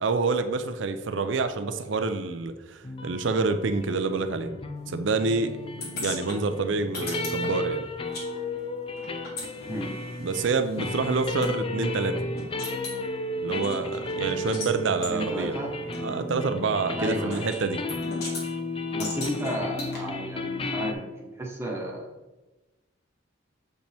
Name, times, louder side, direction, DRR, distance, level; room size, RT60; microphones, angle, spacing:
voice 1, 0.0-4.5 4.9-5.6 5.9-7.8 10.2-12.2 13.4-15.6 16.0-17.8, right 4 dB, 65° right, 9 dB, 0.5 m, -27 dB
sound 1, 2.8-20.9, left 1 dB, 25° left, 0.5 m, -33 dB
sound 2, 5.8-8.3 8.5-11.5 12.0-12.1 12.4-13.0 13.5-14.7 15.0-15.2 15.9-16.0 17.3-17.6 17.9-18.5 19.0-20.0, left 2 dB, 50° left, 1.8 m, -38 dB
voice 2, 9.6-10.0 15.1-15.7 17.0-17.4 18.9-22.1, right 1 dB, 15° right, -2 dB, 1.2 m, -33 dB
7.5 x 5.2 x 3.4 m, 1.1 s
head